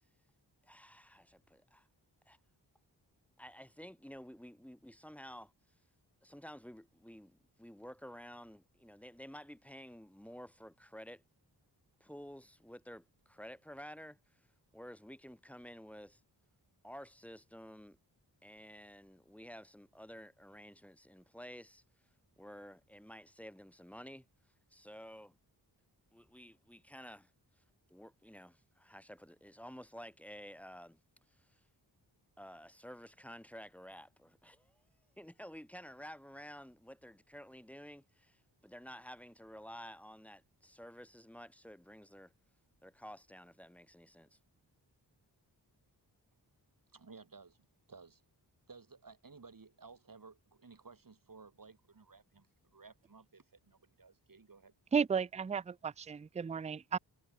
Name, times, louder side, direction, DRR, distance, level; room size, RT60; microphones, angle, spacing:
voice 1, 0.6-1.9 2.3-2.4 3.4-5.5 6.2-11.2 12.0-14.2 14.7-16.2 16.8-18.0 18.4-21.8 22.4-24.3 24.7-25.4 26.1-27.3 27.6-27.7 27.9-31.0 31.3-31.6 32.4-34.8 35.2-42.3 42.8-44.4, equal, 5° left, 1.2 m, -52 dB
voice 2, 46.9-48.2 48.7-54.7, right 4 dB, 50° right, 7.0 m, -56 dB
voice 3, 54.9-57.0, right 6 dB, 15° right, 0.4 m, -34 dB
cardioid pair, 55°, 42 cm